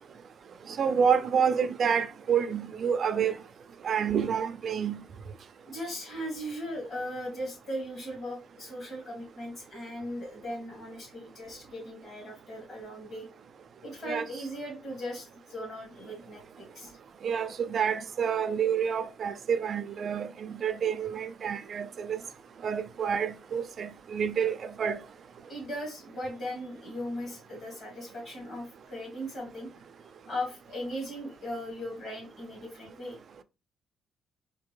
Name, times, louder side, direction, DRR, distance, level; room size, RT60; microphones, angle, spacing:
voice 1, 0.8-3.4 3.8-5.0 14.1-14.2 17.2-22.2 22.6-25.0, right 7 dB, 35° right, 0.3 m, -28 dB
voice 2, 5.7-13.3 13.8-17.0 25.5-29.7 30.3-33.2, equal, 40° left, 2.1 m, -38 dB
4.3 x 2.7 x 3.1 m
cardioid pair, 175°, 0 cm